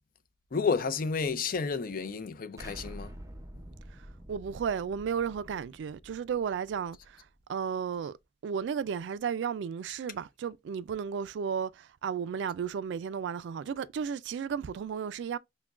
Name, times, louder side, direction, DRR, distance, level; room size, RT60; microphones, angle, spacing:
voice 1, 0.5-3.1, left 5 dB, 50° left, 0.5 m, -31 dB
Explosion, 2.6-7.4, right 1 dB, 20° right, 0.5 m, -48 dB
voice 2, 4.3-8.2 8.4-15.4, right 7 dB, 75° right, 0.3 m, -34 dB
5.9 x 2.2 x 2.3 m
head